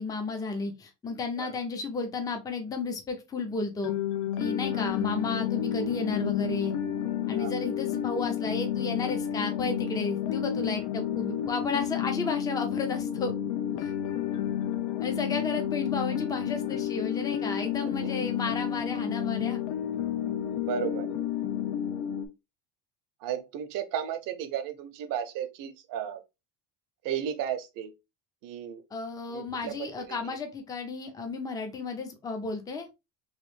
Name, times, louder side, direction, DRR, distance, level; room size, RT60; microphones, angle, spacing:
voice 1, 0.0-3.9 4.4-6.7 7.3-13.4 13.8-13.9 15.0-19.6 28.9-32.9, left 4 dB, 10° left, 0.4 m, -33 dB
sound 1, 3.8-22.3, left 10 dB, 75° left, 0.7 m, -31 dB
voice 2, 20.6-21.1 23.2-26.2 27.0-27.9 28.4-28.8 29.3-30.3, right 9 dB, 50° right, 0.6 m, -34 dB
3.1 x 3.0 x 3.1 m
cardioid pair, 145°, 42 cm